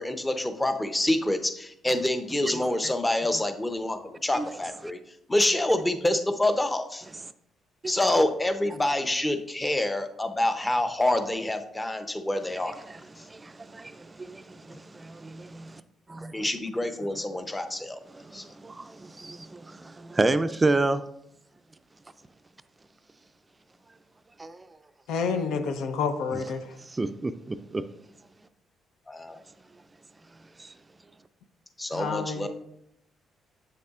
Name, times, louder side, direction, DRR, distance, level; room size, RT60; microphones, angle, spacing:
voice 1, 0.0-5.0 5.3-7.1 7.9-12.7 13.2-13.3 14.7-14.8 16.3-18.0 18.3-18.4 29.1-29.4 31.8-32.5, left 1 dB, 15° left, 0.7 m, -27 dB
voice 2, 13.2-15.8 16.1-16.5 18.1-21.0 24.4-24.7 26.8-27.8 30.6-30.7, right 2 dB, 20° right, 0.4 m, -30 dB
voice 3, 25.1-26.7 31.9-32.5, left 5 dB, 90° left, 0.7 m, -29 dB
7.7 x 6.6 x 2.4 m
cardioid pair, 90°, 0 cm